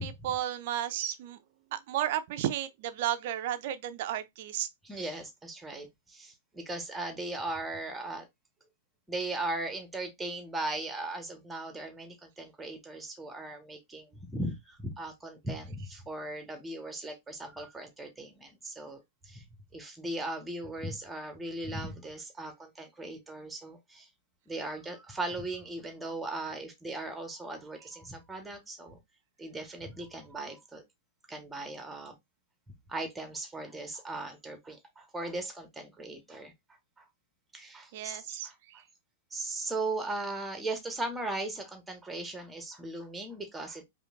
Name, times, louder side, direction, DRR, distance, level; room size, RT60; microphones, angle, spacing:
voice 1, 0.0-1.4 1.7-4.7 37.9-38.8, right 11 dB, 50° right, 0.6 m, -33 dB
voice 2, 4.8-8.3 9.1-19.5 19.7-24.1 24.5-29.0 29.4-30.8 31.3-32.1 32.9-36.5 37.0-37.1 37.5-38.8 39.3-43.8, right 2 dB, 10° right, 1.2 m, -38 dB
5.0 x 2.8 x 2.5 m
figure-of-eight pair, 100°, 0 cm